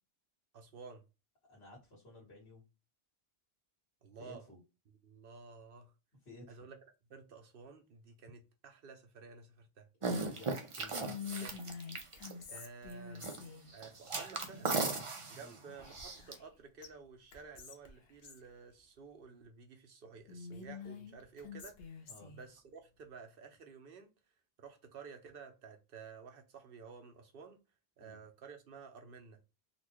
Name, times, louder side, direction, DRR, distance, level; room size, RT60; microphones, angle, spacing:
voice 1, 0.5-1.0 4.0-4.4 4.9-5.9 6.5-6.8 7.1-9.9 11.4-11.6 12.5-13.3 13.7-14.7 15.3-24.1 24.6-27.6 28.0-29.4, right 5 dB, 65° right, 0.9 m, -53 dB
voice 2, 1.5-2.6 4.2-4.6 6.2-6.6 10.2-11.2 15.3-15.6 22.1-22.3 28.0-28.2, left 1 dB, 85° left, 1.7 m, -54 dB
sound 1, 10.0-12.6 13.1-13.5 13.7-16.3, right 3 dB, 35° right, 0.6 m, -37 dB
Whispering, 10.9-13.7 15.8-16.5 16.8-16.9 17.3-18.5 20.3-22.4, left 6 dB, 70° left, 0.9 m, -47 dB
4.1 x 2.2 x 2.9 m
omnidirectional pair, 1.0 m